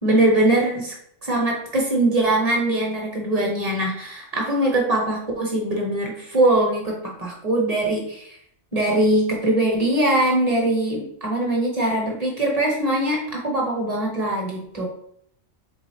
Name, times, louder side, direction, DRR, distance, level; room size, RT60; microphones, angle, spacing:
voice 1, 0.0-0.9 1.2-8.4 8.7-14.9, right 1 dB, 35° right, -1 dB, 1.1 m, -22 dB
3.8 x 3.7 x 3.1 m, 0.68 s
omnidirectional pair, 1.3 m